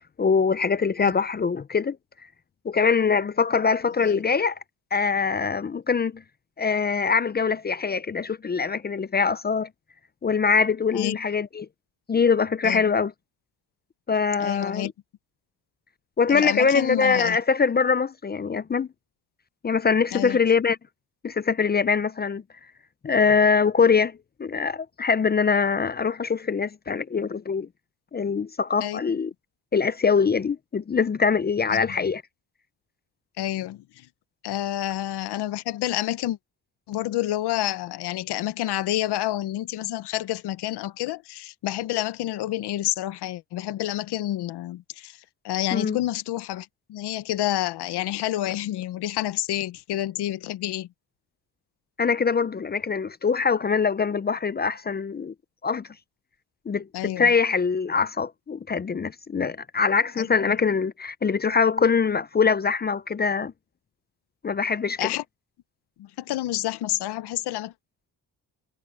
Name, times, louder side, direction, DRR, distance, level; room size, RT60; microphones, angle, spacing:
voice 1, 0.2-2.0 2.6-4.6 4.9-6.2 6.6-9.7 10.2-11.7 12.1-13.1 14.1-14.9 16.2-18.9 19.6-20.8 21.2-22.4 23.0-27.7 28.1-29.3 29.7-32.2 45.7-46.0 52.0-55.3 55.6-55.9 56.7-63.5 64.4-65.1, left 5 dB, 25° left, 0.5 m, -23 dB
voice 2, 14.4-14.9 16.3-17.4 20.1-20.4 28.8-29.0 31.7-32.0 33.4-34.1 34.4-36.4 36.9-50.9 56.9-57.3 60.2-60.3 65.0-65.2 66.0-67.7, left 14 dB, 85° left, 0.9 m, -29 dB
cardioid pair, 100°, 39 cm